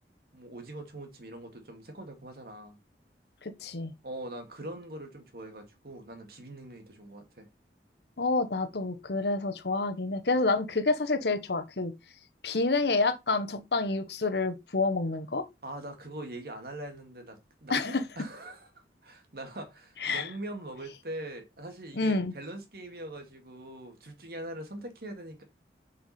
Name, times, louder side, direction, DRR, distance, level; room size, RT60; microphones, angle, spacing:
voice 1, 0.3-2.8 4.0-7.5 15.6-18.7 19.0-25.4, right 1 dB, 55° right, 2.0 m, -42 dB
voice 2, 3.4-3.9 8.2-11.9 12.4-15.4 17.7-18.0 20.0-20.3 21.9-22.3, left 3 dB, 70° left, 1.0 m, -28 dB
6.2 x 5.7 x 4.2 m
head